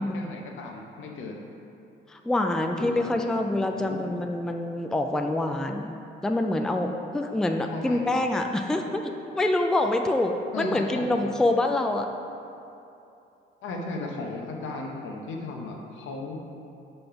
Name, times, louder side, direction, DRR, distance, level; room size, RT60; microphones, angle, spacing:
voice 1, 0.0-1.4 2.8-3.1 3.5-4.0 7.7-8.2 10.5-11.3 13.6-16.4, left 3 dB, 80° left, 1 dB, 0.9 m, -36 dB
voice 2, 2.1-6.0 6.2-12.1, left 1 dB, 5° left, 4 dB, 0.3 m, -26 dB
5.0 x 4.2 x 5.7 m, 2.8 s
cardioid pair, 90°, 20 cm